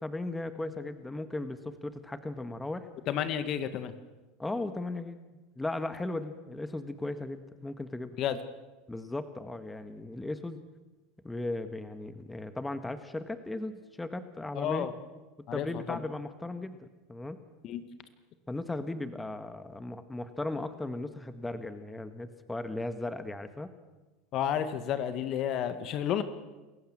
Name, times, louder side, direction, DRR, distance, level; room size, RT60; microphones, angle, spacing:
voice 1, 0.0-2.9 4.4-5.2 5.6-8.2 8.9-10.6 11.2-14.9 15.5-17.4 18.5-23.7, left 2 dB, 10° left, 10 dB, 1.7 m, -37 dB
voice 2, 3.1-3.9 8.2-8.4 14.5-14.9 15.5-16.0 17.6-17.8 24.3-26.2, left 9 dB, 50° left, 11 dB, 1.8 m, -31 dB
27.5 x 15.0 x 7.5 m, 1.2 s
hypercardioid pair, 95°, 0 cm